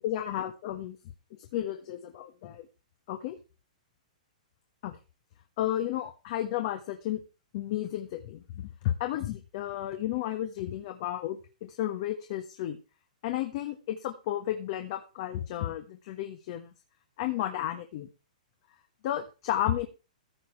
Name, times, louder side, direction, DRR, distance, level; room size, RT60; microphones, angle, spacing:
voice 1, 0.0-1.0 1.4-2.6 3.1-3.4 4.8-5.0 5.6-7.2 7.5-12.8 13.2-16.7 17.2-18.1 19.0-19.9, left 12 dB, 45° left, 6 dB, 1.3 m, -33 dB
15.0 x 7.1 x 4.6 m, 0.31 s
hypercardioid pair, 155°, 4 cm